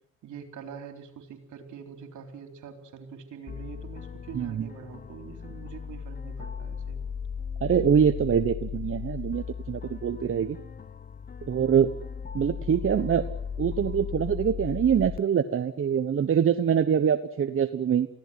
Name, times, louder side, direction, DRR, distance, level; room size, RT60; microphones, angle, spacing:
voice 1, 0.2-7.0, right 6 dB, 75° right, 6 dB, 3.9 m, -44 dB
sound 1, 3.5-15.2, left 7 dB, 30° left, 0.9 m, -37 dB
voice 2, 4.3-4.7 7.6-10.6 11.4-11.9 12.3-13.2 13.6-18.1, right 8 dB, 45° right, 9 dB, 1.2 m, -24 dB
24.0 x 16.5 x 9.5 m, 0.77 s
cardioid pair, 90°, 30 cm